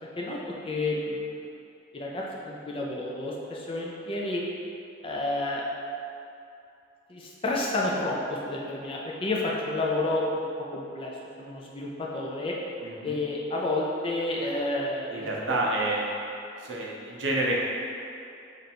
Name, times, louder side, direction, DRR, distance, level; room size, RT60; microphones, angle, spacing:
voice 1, 0.6-1.2 1.9-4.4 5.0-5.6 7.1-10.5 10.7-11.1 11.4-12.5 13.0-15.3, left 2 dB, 30° left, -3 dB, 0.4 m, -30 dB
voice 2, 12.8-13.2 15.1-16.1 16.6-17.6, right 2 dB, 80° right, -3 dB, 0.6 m, -29 dB
3.2 x 2.5 x 4.3 m, 2.7 s
head